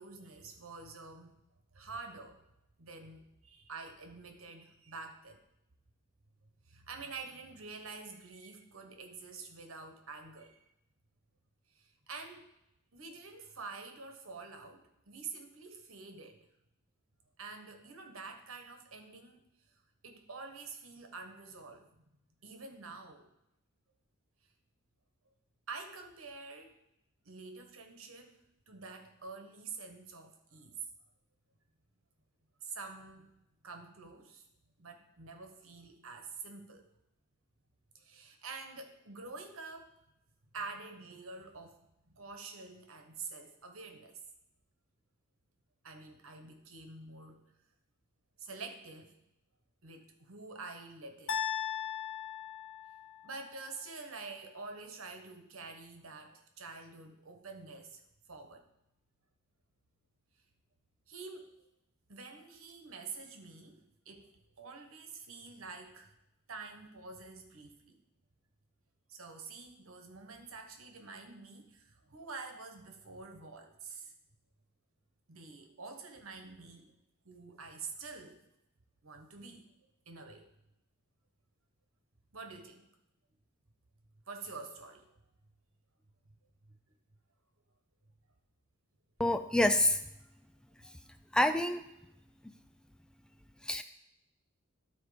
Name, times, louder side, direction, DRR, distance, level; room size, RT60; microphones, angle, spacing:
voice 1, 0.0-1.4 1.7-2.4 2.8-5.4 6.7-10.6 11.7-12.5 12.9-16.5 17.4-19.4 19.7-22.0 22.4-23.3 25.7-26.8 27.2-28.4 28.7-30.8 32.6-33.3 33.6-34.5 34.8-36.9 37.9-39.9 40.5-41.8 42.1-44.2 45.8-47.5 48.4-49.1 49.8-51.4 53.2-58.0 58.3-58.6 61.1-61.5 62.1-64.3 64.6-66.1 66.5-68.0 69.1-74.1 75.3-76.9 77.2-78.4 79.0-79.6 80.1-80.5 82.3-82.9 84.3-85.2 86.6-86.8, right 4 dB, 80° right, 5 dB, 1.3 m, -47 dB
sound 1, 51.3-53.4, left 9 dB, 60° left, 0.8 m, -37 dB
voice 2, 89.2-90.0 91.3-91.8 93.6-93.8, left 1 dB, 5° left, 9 dB, 0.3 m, -27 dB
12.5 x 4.4 x 5.1 m, 0.81 s
head